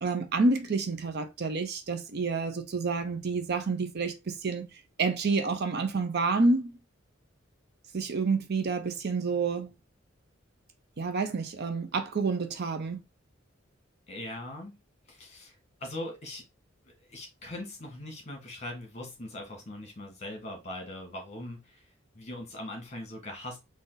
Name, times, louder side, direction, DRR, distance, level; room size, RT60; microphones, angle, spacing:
voice 1, 0.0-4.7 5.0-6.7 7.9-9.7 11.0-13.0, right 3 dB, 55° right, 0.6 m, -28 dB
voice 2, 14.1-14.7 15.1-16.4 16.8-21.8 22.1-23.6, left 1 dB, 35° left, 1.6 m, -41 dB
3.9 x 2.5 x 3.9 m
head